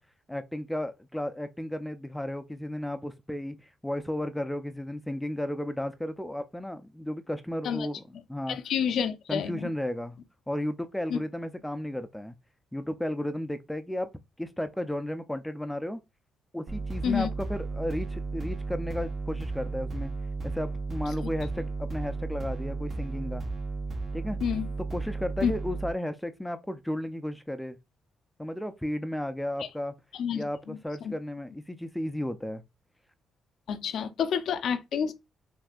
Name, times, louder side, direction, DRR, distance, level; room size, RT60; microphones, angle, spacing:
voice 1, 0.3-8.0 8.3-8.6 9.3-10.2 10.5-12.3 12.7-14.1 14.4-16.0 16.5-20.1 20.4-23.4 24.1-24.4 24.9-27.8 28.4-29.9 30.3-32.6, left 1 dB, 5° left, 0.5 m, -34 dB
voice 2, 8.5-9.7 11.1-11.2 17.0-17.3 24.4-24.7 25.4-25.5 29.6-29.7 30.1-31.1 33.7-35.1, left 8 dB, 70° left, 0.6 m, -29 dB
sound 1, 16.7-25.9, right 3 dB, 50° right, 1.1 m, -34 dB
5.9 x 2.7 x 2.4 m
cardioid pair, 90°, 0 cm